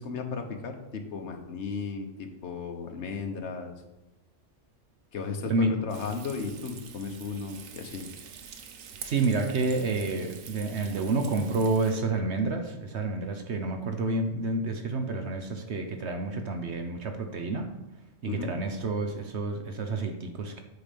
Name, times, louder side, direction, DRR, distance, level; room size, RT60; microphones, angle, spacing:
voice 1, 0.0-3.8 5.1-8.1 18.3-18.5, left 5 dB, 60° left, 4 dB, 1.4 m, -35 dB
Frying (food), 5.9-12.0, right 6 dB, 85° right, 1.2 m, -45 dB
voice 2, 9.0-17.7 18.2-20.6, right 3 dB, 60° right, 5 dB, 1.2 m, -29 dB
8.3 x 6.1 x 5.2 m, 0.98 s
omnidirectional pair, 1.3 m